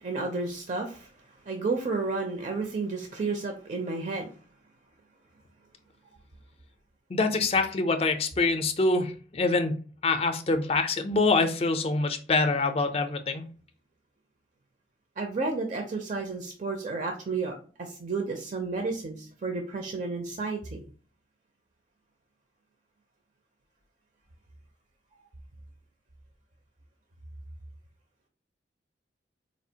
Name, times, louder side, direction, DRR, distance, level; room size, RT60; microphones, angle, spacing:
voice 1, 0.0-1.1 1.5-4.3 15.2-20.8, right 3 dB, 40° right, 3 dB, 0.5 m, -32 dB
voice 2, 7.1-9.8 10.0-13.4, left 3 dB, 30° left, 7 dB, 0.4 m, -25 dB
4.2 x 2.4 x 2.7 m, 0.39 s
head